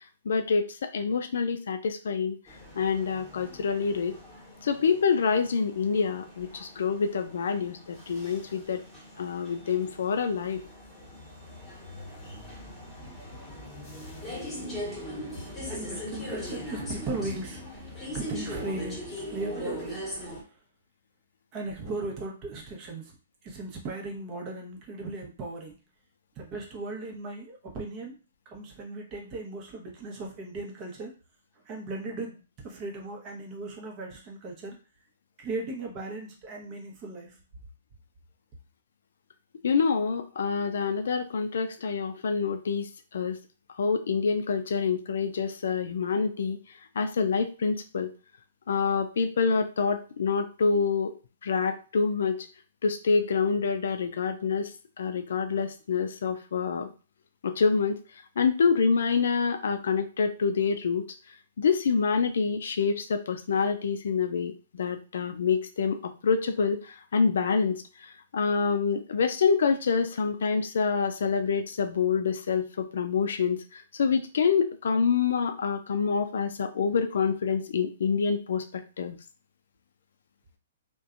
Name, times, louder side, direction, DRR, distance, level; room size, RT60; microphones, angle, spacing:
voice 1, 0.3-2.4 2.8-4.2 4.6-8.8 9.2-10.6 39.6-42.9 43.1-43.4 43.8-46.6 47.0-48.1 48.7-51.1 51.4-52.5 52.8-54.7 55.0-56.9 57.4-58.0 58.4-61.0 61.6-79.2, left 5 dB, 70° left, 8 dB, 0.4 m, -26 dB
sound 1, 2.5-20.4, left 1 dB, 10° left, 1.2 m, -40 dB
voice 2, 15.5-17.6 18.1-19.0 19.3-20.0 21.5-23.1 23.4-25.7 26.4-28.2 28.5-31.1 31.7-32.4 32.6-34.8 35.4-37.4, right 2 dB, 30° right, 0 dB, 0.9 m, -37 dB
2.6 x 2.2 x 2.4 m, 0.35 s
hypercardioid pair, 135°, 0 cm